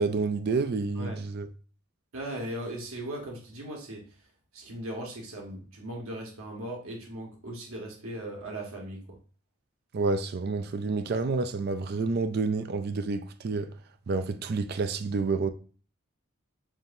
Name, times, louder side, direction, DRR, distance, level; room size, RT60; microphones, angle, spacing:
voice 1, 0.0-1.5 9.9-13.7 14.1-15.5, right 4 dB, 45° right, 0.4 m, -29 dB
voice 2, 2.1-4.0 4.5-9.2, right 1 dB, 75° right, 1.2 m, -38 dB
7.2 x 2.8 x 2.6 m
head